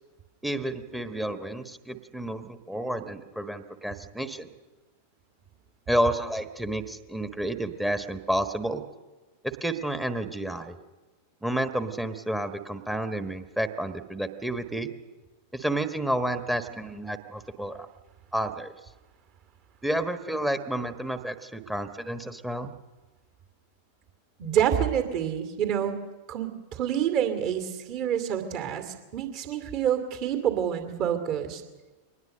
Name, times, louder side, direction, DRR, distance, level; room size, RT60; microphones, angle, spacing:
voice 1, 0.4-4.5 5.9-8.8 9.4-10.8 11.4-14.9 15.5-17.9 18.3-18.7 19.8-22.7, right 1 dB, 5° right, 10 dB, 1.3 m, -30 dB
voice 2, 24.4-31.6, right 9 dB, 40° right, 7 dB, 2.5 m, -28 dB
23.5 x 19.5 x 6.7 m, 1.2 s
figure-of-eight pair, 90°, 0 cm